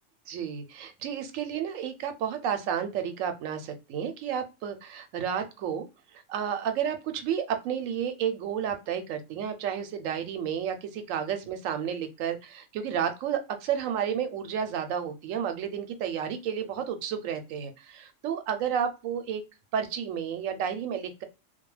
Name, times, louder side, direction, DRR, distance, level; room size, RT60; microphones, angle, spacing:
voice 1, 0.3-5.9 6.1-19.4 19.7-21.2, right 8 dB, 85° right, 8 dB, 1.0 m, -31 dB
2.3 x 2.2 x 3.0 m, 0.28 s
omnidirectional pair, 1.3 m